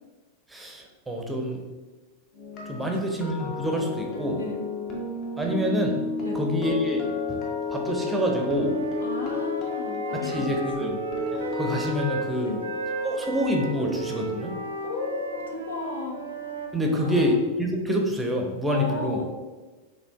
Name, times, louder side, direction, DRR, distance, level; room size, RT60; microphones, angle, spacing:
voice 1, 0.5-1.6 2.7-4.4 5.4-5.9 6.3-7.4 7.7-8.7 10.1-11.0 11.6-12.5 13.0-14.5 16.7-19.2, equal, 10° right, 1 dB, 0.6 m, -27 dB
sound 1, 2.3-16.4 16.7-17.0, left 4 dB, 35° left, 0.8 m, -33 dB
Wind instrument woodwind instrument, 7.9-12.3 12.6-17.4, right 4 dB, 70° right, 0.4 m, -35 dB
voice 2, 9.0-11.0 11.3-11.6 12.4-12.6 14.8-16.2 17.0-17.2 18.7-19.2, left 2 dB, 70° left, 2 dB, 0.6 m, -34 dB
4.9 x 3.2 x 2.3 m, 1.3 s
figure-of-eight pair, 90°, 0 cm